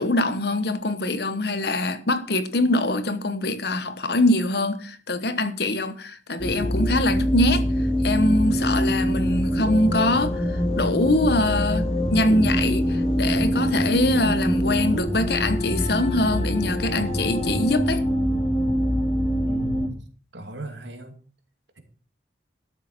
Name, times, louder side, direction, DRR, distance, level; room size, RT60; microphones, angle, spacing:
voice 1, 0.0-7.6 8.0-10.4 10.8-18.0, left 2 dB, 60° left, 1.1 m, -23 dB
sound 1, 6.4-19.9, equal, 35° left, 2.9 m, -24 dB
voice 2, 19.4-19.9 20.3-21.2, right 1 dB, 80° right, 2.5 m, -37 dB
12.5 x 7.2 x 6.0 m
head